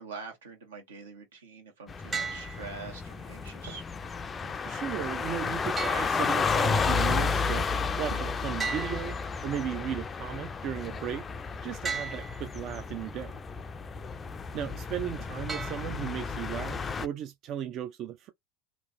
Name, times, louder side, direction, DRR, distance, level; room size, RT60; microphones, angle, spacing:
voice 1, 0.0-3.8, right 4 dB, 80° right, 1.3 m, -45 dB
sound 1, 1.9-17.1, left 5 dB, 25° left, 0.4 m, -32 dB
sound 2, 2.1-3.1 5.8-6.8 8.6-9.8 11.8-12.8 15.5-16.4, right 5 dB, 20° right, 0.9 m, -38 dB
sound 3, 3.2-10.0, right 5 dB, 65° right, 1.1 m, -52 dB
voice 2, 4.7-9.2 9.4-11.3 11.6-13.4 14.5-18.3, right 10 dB, 45° right, 0.4 m, -36 dB
2.9 x 2.5 x 2.5 m
hypercardioid pair, 95°, 0 cm